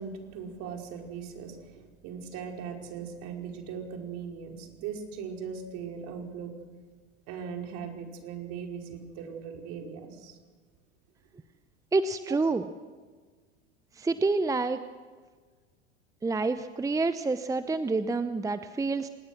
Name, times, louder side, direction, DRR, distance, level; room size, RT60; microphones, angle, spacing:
voice 1, 0.0-6.5 7.3-10.4 12.3-12.4, right 6 dB, 50° right, 2 dB, 5.1 m, -39 dB
voice 2, 11.9-12.6 14.0-14.8 16.2-19.1, right 3 dB, 10° right, 11 dB, 0.8 m, -28 dB
26.5 x 20.0 x 6.4 m, 1.4 s
hypercardioid pair, 90°, 34 cm